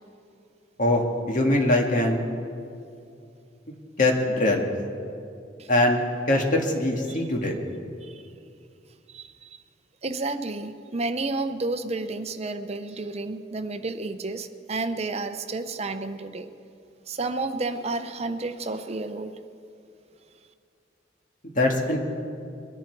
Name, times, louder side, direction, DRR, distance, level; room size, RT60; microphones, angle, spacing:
voice 1, 1.3-2.2 4.0-4.6 5.7-7.5 21.6-22.0, left 1 dB, 45° left, 1 dB, 1.7 m, -22 dB
voice 2, 9.1-9.6 10.0-16.5 17.1-19.4, right 3 dB, 35° right, 10 dB, 0.6 m, -31 dB
22.0 x 11.0 x 4.6 m, 2.5 s
head